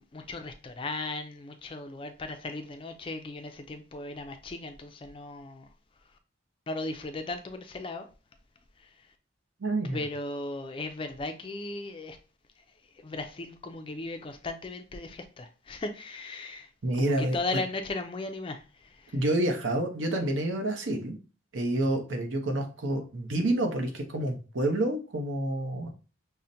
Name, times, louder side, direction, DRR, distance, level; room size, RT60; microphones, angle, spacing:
voice 1, 0.1-5.7 6.7-8.1 8.8-8.9 9.8-12.2 13.0-19.1, left 2 dB, 25° left, 0.3 m, -37 dB
voice 2, 9.6-10.0 16.8-17.4 19.1-21.1 21.5-25.9, right 1 dB, 75° right, 0.7 m, -28 dB
5.6 x 2.1 x 2.6 m
head